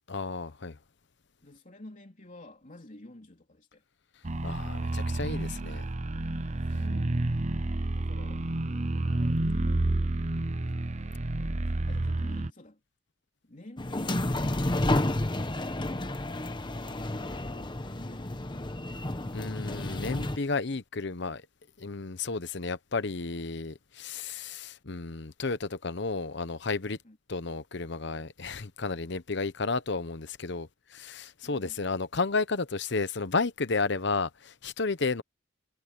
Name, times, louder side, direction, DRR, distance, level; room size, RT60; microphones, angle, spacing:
voice 1, 0.1-0.8 4.4-5.8 19.3-21.4 21.8-27.0 27.3-35.2, left 4 dB, 60° left, 1.0 m, -32 dB
voice 2, 1.4-3.8 4.8-5.2 6.6-7.2 7.9-8.5 8.9-10.1 11.3-12.8 13.4-15.0 15.5-17.0 17.3-18.6 27.0-27.2 31.4-31.8, left 1 dB, 40° left, 3.3 m, -51 dB
sound 1, 4.2-12.5, right 2 dB, 35° right, 0.8 m, -30 dB
sound 2, 13.8-20.4, left 1 dB, 25° left, 1.1 m, -31 dB
head